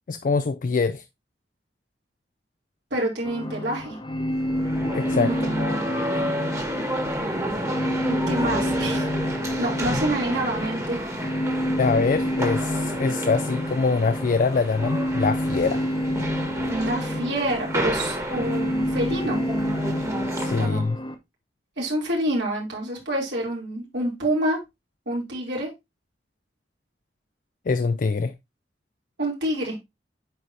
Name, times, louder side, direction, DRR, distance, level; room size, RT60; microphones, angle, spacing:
voice 1, 0.1-1.0 4.9-5.5 9.9-10.0 11.8-15.9 20.4-21.0 27.7-28.3, left 4 dB, 50° left, 0.4 m, -24 dB
voice 2, 2.9-4.0 5.1-5.8 8.1-9.1 9.6-11.0 16.7-19.4 20.6-20.8 21.8-24.6 25.1-25.7 29.2-29.8, right 1 dB, 80° right, 3.0 m, -27 dB
sound 1, 3.2-21.1, equal, 30° left, 0.9 m, -29 dB
sound 2, 4.3-20.7, right 1 dB, 20° right, 1.4 m, -31 dB
9.0 x 4.7 x 2.7 m
head